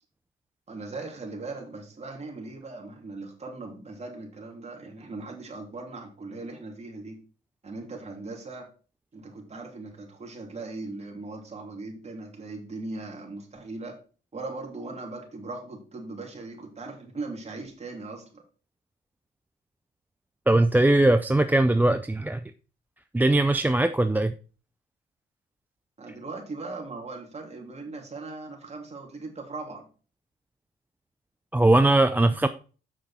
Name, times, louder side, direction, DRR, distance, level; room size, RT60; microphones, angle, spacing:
voice 1, 0.7-7.2 7.6-8.7 9.1-14.0 14.3-18.4 26.0-29.9, right 3 dB, 35° right, 1 dB, 3.2 m, -39 dB
voice 2, 20.5-22.5 23.1-24.3 31.5-32.5, right 2 dB, 10° right, 10 dB, 0.5 m, -20 dB
8.1 x 6.3 x 4.3 m, 0.36 s
cardioid pair, 90°, 20 cm